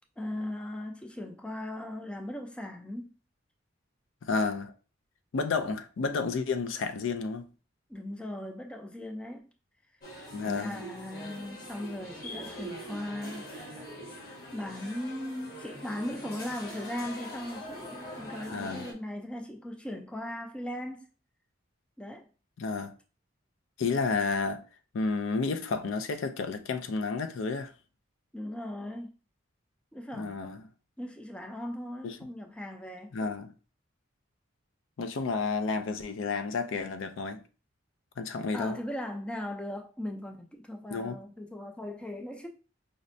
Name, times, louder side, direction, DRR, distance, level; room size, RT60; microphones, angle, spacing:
voice 1, 0.2-3.1 7.9-9.5 10.4-13.5 14.5-21.1 22.0-22.3 28.3-29.1 29.9-30.4 31.0-33.2 38.5-42.5, left 1 dB, 5° left, 0.3 m, -38 dB
voice 2, 4.2-4.7 5.3-7.5 10.3-10.8 18.5-18.9 22.6-22.9 23.8-24.6 24.9-27.7 30.2-30.6 32.0-32.2 33.1-33.5 35.0-37.4 38.2-38.8 40.9-41.1, left 4 dB, 70° left, 0.4 m, -31 dB
sound 1, 10.0-18.9, equal, 50° left, 1.1 m, -43 dB
5.0 x 2.1 x 2.6 m
head